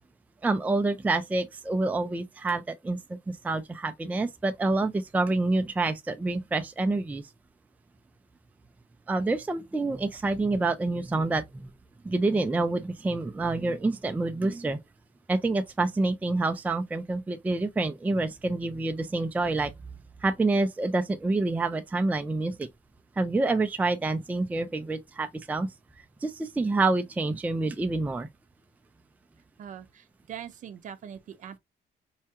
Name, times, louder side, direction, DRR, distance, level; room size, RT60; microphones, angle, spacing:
voice 1, 0.4-7.2 9.1-11.7 12.0-14.8 15.3-19.7 20.2-22.7 23.2-25.7 26.0-28.3, right 2 dB, 10° right, 0.4 m, -27 dB
voice 2, 29.6-31.6, right 9 dB, 50° right, 0.6 m, -42 dB
4.6 x 2.2 x 2.8 m
cardioid pair, 110°, 17 cm